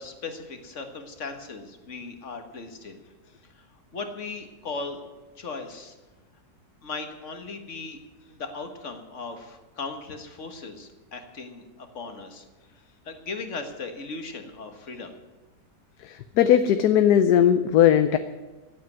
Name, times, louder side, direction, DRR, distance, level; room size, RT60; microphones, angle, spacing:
voice 1, 0.0-3.0 3.5-3.7 3.9-5.0 5.4-6.0 6.8-8.0 8.3-12.5 13.1-15.1, left 4 dB, 50° left, 6 dB, 1.9 m, -37 dB
voice 2, 16.0-18.2, left 10 dB, 75° left, 9 dB, 1.3 m, -19 dB
15.5 x 8.7 x 9.3 m, 1.2 s
omnidirectional pair, 1.7 m